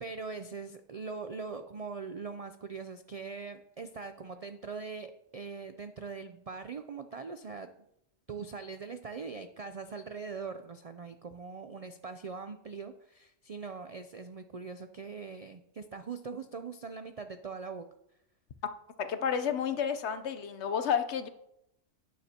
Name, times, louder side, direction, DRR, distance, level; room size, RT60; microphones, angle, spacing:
voice 1, 0.0-7.7 8.3-17.8, right 5 dB, 60° right, 8 dB, 0.3 m, -42 dB
voice 2, 19.0-21.3, left 7 dB, 65° left, 10 dB, 1.0 m, -31 dB
11.5 x 9.5 x 2.8 m, 0.80 s
omnidirectional pair, 1.3 m